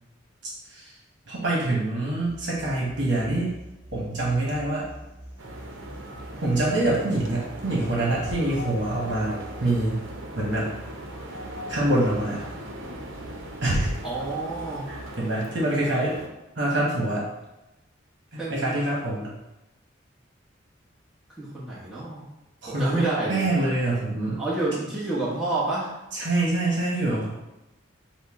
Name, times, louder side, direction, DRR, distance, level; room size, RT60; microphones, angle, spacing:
voice 1, 1.3-3.5 3.9-4.8 6.3-10.0 10.3-10.7 11.7-12.4 13.6-13.9 14.9-16.1 16.6-17.2 18.3-19.3 22.6-23.0 23.3-24.4 26.1-27.3, right 1 dB, 60° right, -5 dB, 1.2 m, -25 dB
sound 1, 2.2-15.1, equal, 30° right, 1.4 m, -45 dB
sound 2, 5.4-16.3, right 1 dB, 80° right, 0.7 m, -39 dB
voice 2, 14.0-14.9 18.4-18.9 21.4-22.3 22.6-23.4 24.4-25.9, right 2 dB, 5° right, -10 dB, 1.0 m, -29 dB
6.4 x 2.2 x 3.6 m, 0.96 s
head